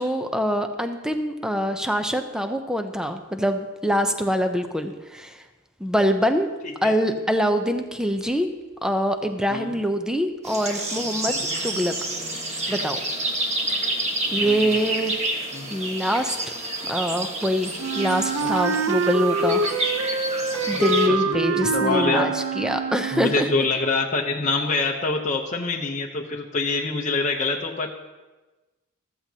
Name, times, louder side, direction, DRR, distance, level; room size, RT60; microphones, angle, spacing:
voice 1, 0.0-5.4 5.8-6.5 6.8-8.5 8.8-11.4 11.6-11.9 12.7-13.0 14.3-15.1 15.7-16.4 16.9-19.6 20.7-23.5, equal, 5° right, 6 dB, 0.6 m, -24 dB
sound 1, 10.4-21.1, right 1 dB, 30° right, 1.5 m, -29 dB
voice 2, 11.3-11.6 14.3-14.8 15.5-15.7 18.4-18.5 20.7-22.3 23.1-27.9, left 3 dB, 35° left, 0 dB, 0.8 m, -26 dB
Wind instrument woodwind instrument, 17.8-23.6, right 3 dB, 80° right, 0.7 m, -25 dB
14.0 x 14.0 x 2.8 m, 1.2 s
head